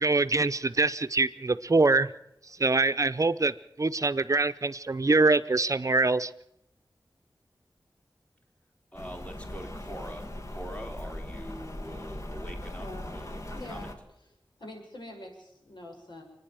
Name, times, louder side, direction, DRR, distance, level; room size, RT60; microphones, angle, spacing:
voice 1, 0.0-2.1 2.6-3.5 3.8-6.3, right 3 dB, 45° right, 11 dB, 0.7 m, -24 dB
Rain, 8.9-13.9, left 1 dB, 40° left, 2.3 m, -39 dB
voice 2, 8.9-13.9, equal, 15° left, 3 dB, 3.1 m, -44 dB
voice 3, 12.6-13.1 13.5-13.9 14.6-16.2, left 1 dB, 80° left, 2 dB, 6.7 m, -44 dB
29.5 x 10.0 x 9.1 m, 0.79 s
wide cardioid pair, 70°, 8 cm